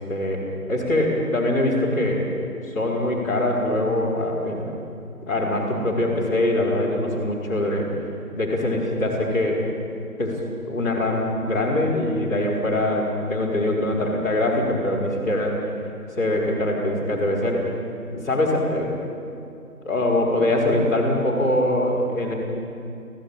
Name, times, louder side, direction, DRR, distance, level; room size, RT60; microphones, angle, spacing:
voice 1, 0.1-0.4 0.7-2.2 2.7-4.7 5.3-7.9 8.4-9.6 10.2-15.6 16.1-17.7 18.1-18.9 19.8-22.3, left 1 dB, 10° left, -10 dB, 4.1 m, -23 dB
24.5 x 16.0 x 9.2 m, 2.5 s
figure-of-eight pair, 165°, 45 cm